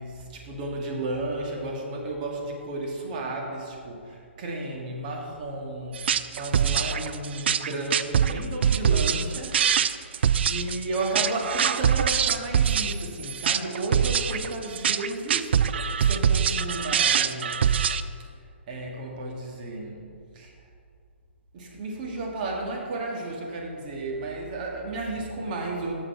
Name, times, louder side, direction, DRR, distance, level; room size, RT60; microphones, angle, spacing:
voice 1, 0.0-17.8 18.7-20.1 20.3-20.5 21.5-25.9, right 2 dB, 40° right, -1 dB, 1.7 m, -33 dB
sound 1, 5.9-18.0, right 8 dB, 60° right, 0.4 m, -23 dB
7.9 x 6.9 x 4.4 m, 2.2 s
hypercardioid pair, 140°, 7 cm